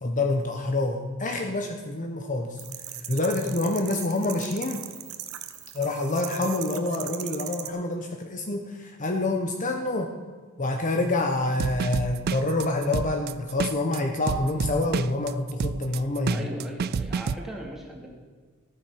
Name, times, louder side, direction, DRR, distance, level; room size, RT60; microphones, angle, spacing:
voice 1, 0.0-2.6 3.1-4.8 5.7-10.1 10.6-16.5, left 2 dB, 40° left, 4 dB, 1.0 m, -27 dB
sound 1, 2.6-7.7, right 12 dB, 80° right, 1.0 m, -38 dB
sound 2, 11.6-17.4, right 5 dB, 50° right, 0.4 m, -29 dB
voice 2, 16.3-18.1, right 1 dB, ahead, -2 dB, 2.5 m, -38 dB
14.0 x 9.2 x 5.9 m, 1.5 s
head